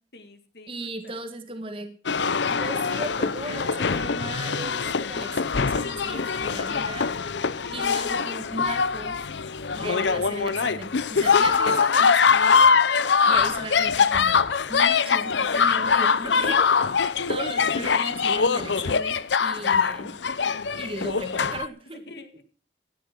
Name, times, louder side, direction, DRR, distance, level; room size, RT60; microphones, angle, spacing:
voice 1, 0.1-1.2 7.5-7.8 13.2-13.8 16.2-16.9 21.9-22.4, left 2 dB, 65° left, 8 dB, 2.0 m, -45 dB
voice 2, 0.7-1.9 2.5-7.1 7.5-9.2 9.7-12.7 13.3-16.6 17.3-20.1 20.8-22.0, right 2 dB, 30° right, 7 dB, 1.8 m, -37 dB
sound 1, 2.1-21.7, left 5 dB, 85° left, 0.7 m, -23 dB
16.0 x 10.0 x 6.1 m, 0.42 s
head